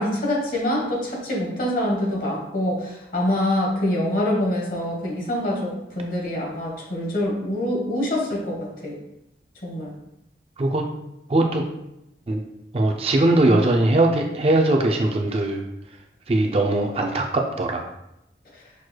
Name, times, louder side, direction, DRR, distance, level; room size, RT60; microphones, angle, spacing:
voice 1, 0.0-8.6 8.8-9.0 9.6-9.9, left 1 dB, 50° left, -3 dB, 1.2 m, -25 dB
voice 2, 11.3-11.6 12.3-12.4 12.7-15.6 16.3-17.9, right 2 dB, 35° right, 2 dB, 0.4 m, -20 dB
6.2 x 3.0 x 2.2 m, 0.85 s
head